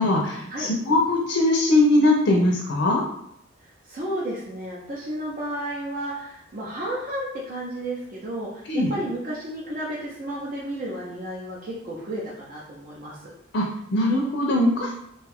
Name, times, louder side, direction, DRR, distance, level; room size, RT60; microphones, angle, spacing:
voice 1, 0.0-3.0 8.7-8.9 13.5-14.9, left 2 dB, 70° left, -1 dB, 0.5 m, -21 dB
voice 2, 3.9-8.6 8.9-13.3, right 1 dB, 45° right, -6 dB, 0.6 m, -32 dB
2.6 x 2.3 x 3.4 m, 0.74 s
head